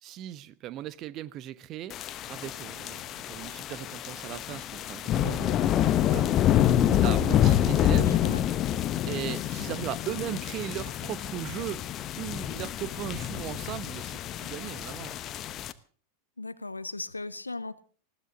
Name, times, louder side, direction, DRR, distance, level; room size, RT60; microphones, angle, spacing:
voice 1, 0.0-2.0 2.3-6.5 7.0-8.1 9.1-15.2, right 12 dB, 35° right, 1.0 m, -38 dB
sound 1, 1.9-15.7, left 11 dB, 35° left, 1.0 m, -27 dB
voice 2, 8.0-8.4 16.4-17.8, left 2 dB, 85° left, 1.0 m, -37 dB
20.0 x 16.5 x 3.9 m
figure-of-eight pair, 90°, 0 cm